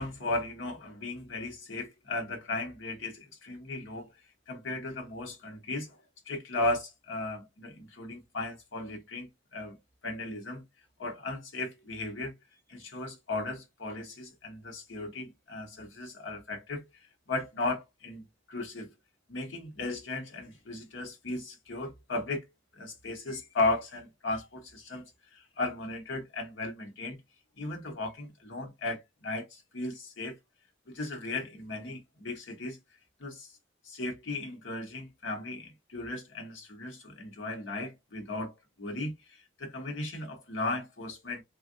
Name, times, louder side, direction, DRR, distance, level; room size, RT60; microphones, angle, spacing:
voice 1, 0.0-4.1 4.5-6.0 6.3-9.8 10.0-10.6 11.0-12.3 12.7-16.9 17.3-18.2 18.5-18.9 19.3-22.4 22.7-27.2 27.6-30.4 30.9-32.8 33.2-33.5 33.8-41.4, left 2 dB, 85° left, 1.0 m, -36 dB
3.4 x 2.4 x 2.6 m
head